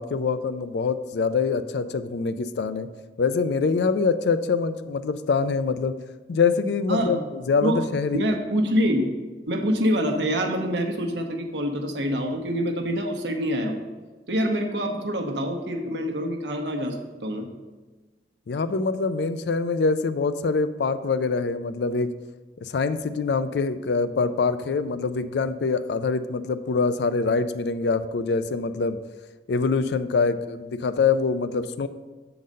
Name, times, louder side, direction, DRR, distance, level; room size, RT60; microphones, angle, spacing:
voice 1, 0.0-2.9 3.2-5.9 6.3-8.3 18.5-22.1 22.6-29.0 29.5-31.9, left 4 dB, 70° left, 12 dB, 0.4 m, -24 dB
voice 2, 8.1-9.1 9.5-13.8 14.3-17.5, equal, 85° right, 3 dB, 0.9 m, -25 dB
7.4 x 3.9 x 5.3 m, 1.3 s
head